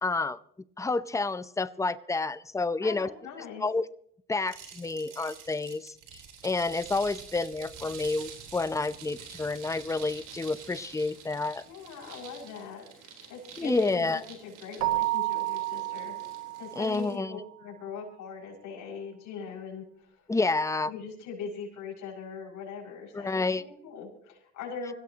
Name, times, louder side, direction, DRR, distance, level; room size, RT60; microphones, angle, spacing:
voice 1, 0.0-0.4 0.8-3.1 3.6-3.9 4.3-11.6 13.6-14.2 16.8-17.4 20.3-20.9 23.1-23.6, left 3 dB, 10° left, 15 dB, 0.6 m, -29 dB
voice 2, 2.8-3.7 11.6-16.3 16.6-20.1 20.9-24.9, left 5 dB, 85° left, -3 dB, 6.0 m, -41 dB
sound 1, 4.5-17.2, right 6 dB, 85° right, 3.9 m, -48 dB
Keyboard (musical), 14.8-17.2, right 18 dB, 65° right, 0.7 m, -31 dB
25.5 x 16.0 x 2.9 m, 0.66 s
cardioid pair, 90°, 30 cm